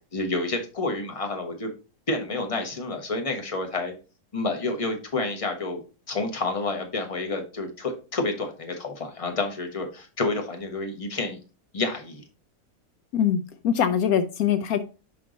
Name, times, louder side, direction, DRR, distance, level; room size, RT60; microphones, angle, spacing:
voice 1, 0.1-1.7 2.1-3.9 4.3-5.8 6.1-11.4 11.7-12.2, left 3 dB, 25° left, 1.1 m, -29 dB
voice 2, 13.1-14.8, left 8 dB, 75° left, 1.0 m, -23 dB
5.6 x 5.3 x 3.9 m
omnidirectional pair, 1.6 m